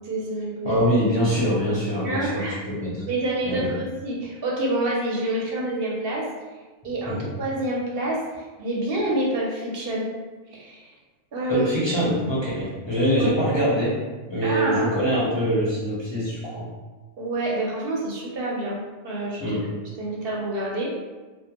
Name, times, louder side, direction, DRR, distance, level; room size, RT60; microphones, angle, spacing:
voice 1, 0.0-0.8 2.0-2.6 3.1-6.3 6.8-8.2 8.6-10.1 10.5-10.9 11.3-11.7 13.2-13.6 14.4-14.9 17.2-18.8 19.0-19.4 20.0-20.9, right 1 dB, 65° right, -4 dB, 0.8 m, -27 dB
voice 2, 0.6-3.0 3.4-3.7 7.1-7.3 11.5-14.0 14.3-16.7 19.4-19.7, equal, 30° left, -9 dB, 0.5 m, -24 dB
2.4 x 2.1 x 2.8 m, 1.2 s
omnidirectional pair, 1.1 m